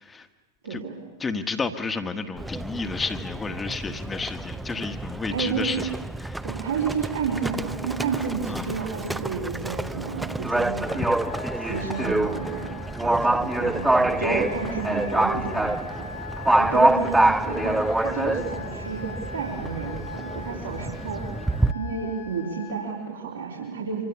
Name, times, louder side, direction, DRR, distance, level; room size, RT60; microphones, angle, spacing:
voice 1, 0.6-1.0 5.3-5.9 6.4-11.0 11.6-12.7 13.0-16.1 16.6-21.4 21.7-24.0, right 5 dB, 70° right, -4 dB, 4.4 m, -31 dB
voice 2, 1.2-5.9 6.2-6.4 8.5-8.7, left 4 dB, 15° left, 7 dB, 1.5 m, -31 dB
Livestock farm animals working animals, 2.4-21.7, right 1 dB, 5° right, 0.8 m, -26 dB
Wind instrument woodwind instrument, 10.8-22.9, left 5 dB, 70° left, 2.8 m, -41 dB
26.0 x 26.0 x 7.2 m, 1.3 s
figure-of-eight pair, 90°, 0 cm